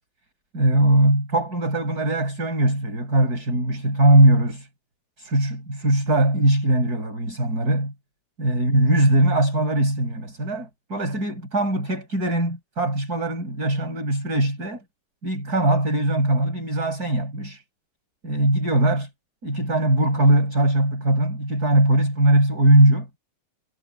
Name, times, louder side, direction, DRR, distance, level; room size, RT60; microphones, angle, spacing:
voice 1, 0.5-4.7 5.2-7.9 8.4-14.8 15.2-17.6 18.2-19.1 19.4-23.1, right 1 dB, 25° right, 8.3 m, -20 dB
omnidirectional pair, 3.7 m